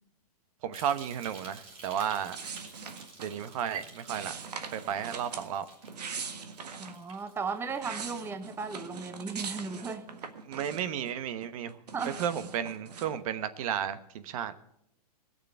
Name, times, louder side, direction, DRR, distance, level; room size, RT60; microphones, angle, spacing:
voice 1, 0.6-2.4 3.2-4.4 4.7-5.6 10.5-11.8 12.2-14.6, right 9 dB, 60° right, 12 dB, 1.1 m, -33 dB
sound 1, 0.7-9.1 9.3-9.8 10.3-10.4, right 3 dB, 30° right, 3.8 m, -52 dB
sound 2, 2.3-3.5 4.1-5.5 5.8-7.0 7.5-11.1 11.4-13.1, right 5 dB, 85° right, 1.7 m, -41 dB
voice 2, 6.8-10.1 11.9-12.2, right 4 dB, 10° right, 10 dB, 0.8 m, -36 dB
17.5 x 6.8 x 8.7 m, 0.75 s
hypercardioid pair, 130°, 20 cm